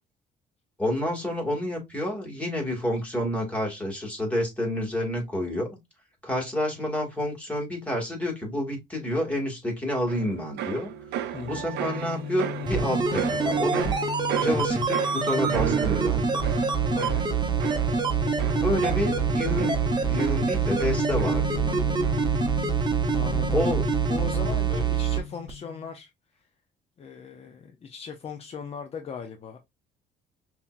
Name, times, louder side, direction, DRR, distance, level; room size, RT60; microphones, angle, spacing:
voice 1, 0.8-5.7 6.2-10.9 11.5-14.0 14.4-16.4 18.5-19.8 20.0-22.0 23.5-23.8, left 1 dB, 10° left, 2.1 m, -29 dB
sound 1, 10.1-21.7 22.0-22.5, right 10 dB, 80° right, 0.5 m, -35 dB
sound 2, 11.3-25.9, left 8 dB, 55° left, 1.2 m, -35 dB
voice 2, 11.3-11.7 16.9-17.3 23.1-23.7 24.1-26.5 27.0-29.6, left 6 dB, 35° left, 0.7 m, -38 dB
sound 3, 12.6-25.2 25.5-25.6, right 6 dB, 25° right, 1.0 m, -25 dB
5.5 x 2.9 x 2.5 m
cardioid pair, 110°, 17 cm